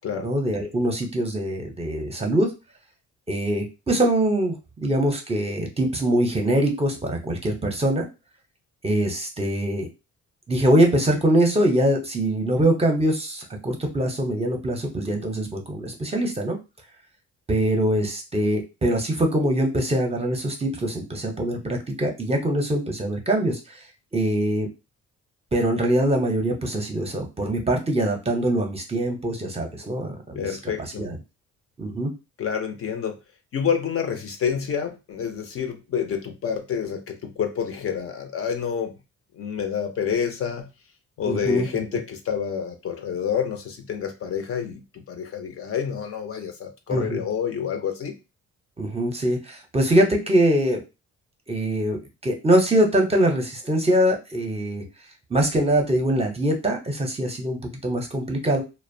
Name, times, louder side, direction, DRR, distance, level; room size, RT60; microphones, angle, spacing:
voice 1, 0.2-2.5 3.3-8.1 8.8-9.9 10.5-16.6 17.5-23.8 24.1-24.7 25.5-30.5 31.0-31.2 31.8-32.1 41.3-41.8 46.9-47.2 48.8-50.8 51.5-54.8 55.3-58.6, right 1 dB, 20° right, 2 dB, 0.6 m, -23 dB
voice 2, 30.4-31.1 32.4-33.2 33.5-38.9 39.3-40.7 41.2-48.1, left 7 dB, 50° left, 6 dB, 0.5 m, -28 dB
2.4 x 2.1 x 2.5 m, 0.27 s
cardioid pair, 90°, 30 cm